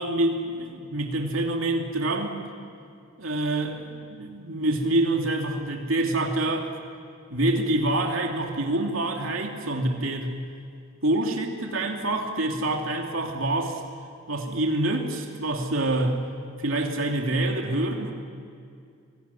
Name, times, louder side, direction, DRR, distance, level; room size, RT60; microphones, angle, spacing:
voice 1, 0.0-2.4 3.2-6.7 7.3-10.4 11.0-13.8 14.3-16.2 16.6-18.1, right 1 dB, 80° right, 1 dB, 2.7 m, -26 dB
26.5 x 21.5 x 9.9 m, 2.3 s
head